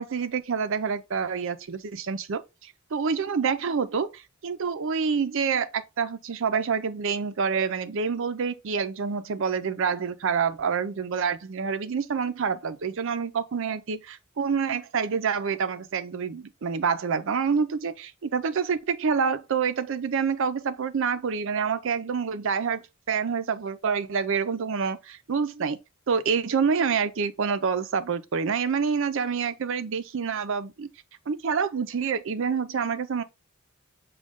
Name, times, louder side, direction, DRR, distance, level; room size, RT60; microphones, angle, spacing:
voice 1, 0.0-22.8 23.1-25.8 26.1-30.9 31.3-33.2, right 6 dB, 60° right, 0.5 m, -27 dB
6.3 x 2.3 x 3.5 m
head